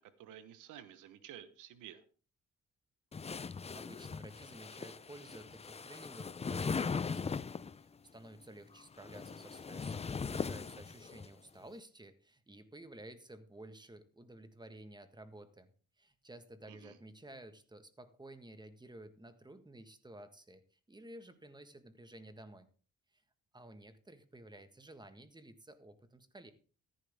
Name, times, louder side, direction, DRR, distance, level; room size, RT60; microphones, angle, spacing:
voice 1, 0.0-2.0 16.7-17.0, right 10 dB, 90° right, 13 dB, 1.2 m, -52 dB
sound 1, 3.1-7.8 8.8-11.3, left 5 dB, 20° left, 0.5 m, -39 dB
voice 2, 3.3-7.5 7.8-15.7 16.0-22.7 23.1-23.2 23.5-26.5, right 1 dB, 15° right, 10 dB, 1.5 m, -53 dB
14.0 x 11.0 x 3.6 m, 0.38 s
cardioid pair, 90°, 30 cm